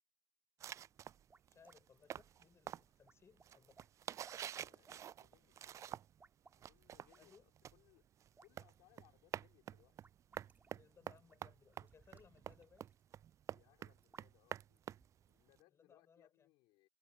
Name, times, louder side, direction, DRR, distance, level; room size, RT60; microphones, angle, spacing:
sound 1, 0.6-6.3 6.5-15.6, right 10 dB, 40° right, 0.3 m, -49 dB
sound 2, 0.9-15.4, right 4 dB, 20° right, 3.6 m, -71 dB
voice 1, 1.5-3.8 7.2-7.5 10.7-12.9 15.7-16.5, left 6 dB, 35° left, 5.3 m, -66 dB
voice 2, 4.6-5.8 6.6-8.1 8.4-10.0 13.5-14.8 15.3-16.9, left 21 dB, 65° left, 4.4 m, -71 dB
hypercardioid pair, 75°, 8 cm